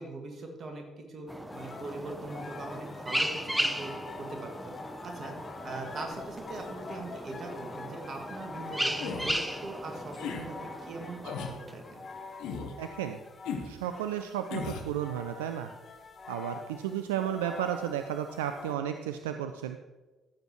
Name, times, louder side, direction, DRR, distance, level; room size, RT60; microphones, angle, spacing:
voice 1, 0.0-3.9 4.3-4.7 5.0-5.3 5.6-12.0, right 2 dB, 45° right, 3 dB, 1.9 m, -41 dB
sound 1, 1.3-12.2, equal, 5° right, 0.7 m, -37 dB
sound 2, 1.5-18.8, left 4 dB, 40° left, 1.0 m, -46 dB
sound 3, 9.0-9.3 10.1-10.5 11.2-11.6 12.4-12.8 13.4-13.7 14.5-14.9, left 5 dB, 65° left, 1.0 m, -36 dB
voice 2, 12.8-13.2 13.7-15.7 16.3-19.8, right 10 dB, 75° right, 8 dB, 0.3 m, -33 dB
14.0 x 7.1 x 3.1 m, 1.2 s
figure-of-eight pair, 45°, 0 cm